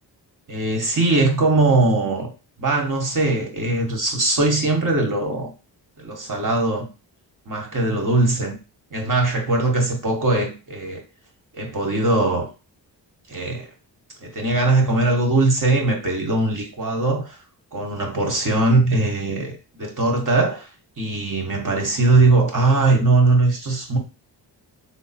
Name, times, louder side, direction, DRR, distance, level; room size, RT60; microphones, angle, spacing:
voice 1, 0.5-2.3 2.6-5.5 6.0-6.9 7.5-8.5 8.9-11.0 11.5-12.5 13.3-13.7 14.2-17.4 17.7-20.7 21.0-24.0, right 2 dB, 45° right, 1.4 m, -20 dB
3.4 x 2.0 x 4.2 m
supercardioid pair, 50°, 45 cm